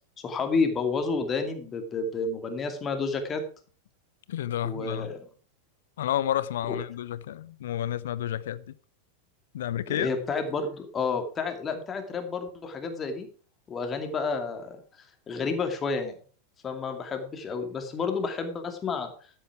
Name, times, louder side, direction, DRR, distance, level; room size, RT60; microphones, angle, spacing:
voice 1, 0.2-3.4 4.6-5.2 6.7-6.8 9.9-13.3 13.7-14.8 15.3-16.1 16.6-19.1, left 4 dB, 20° left, 2.3 m, -30 dB
voice 2, 4.3-5.1 6.0-8.6 9.5-10.1, left 11 dB, 60° left, 0.6 m, -30 dB
12.5 x 8.8 x 4.7 m
figure-of-eight pair, 90°, 0 cm